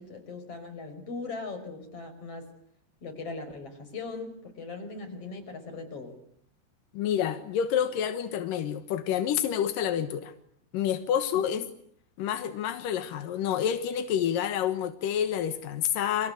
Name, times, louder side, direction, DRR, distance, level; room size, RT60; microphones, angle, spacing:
voice 1, 0.0-2.5 3.0-6.2 11.3-11.6, left 3 dB, 30° left, 5.9 m, -39 dB
voice 2, 6.9-10.3 10.7-11.6 12.2-16.3, left 9 dB, 75° left, 2.0 m, -28 dB
29.0 x 25.0 x 8.3 m
omnidirectional pair, 6.0 m